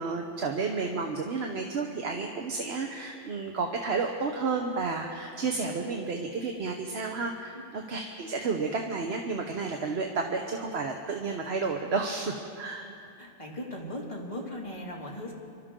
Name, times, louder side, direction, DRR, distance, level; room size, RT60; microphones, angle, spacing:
voice 1, 0.0-12.9, right 4 dB, 65° right, 3 dB, 1.2 m, -31 dB
voice 2, 13.2-15.3, left 1 dB, 25° left, -3 dB, 2.3 m, -38 dB
26.5 x 13.0 x 3.7 m, 2.6 s
omnidirectional pair, 1.2 m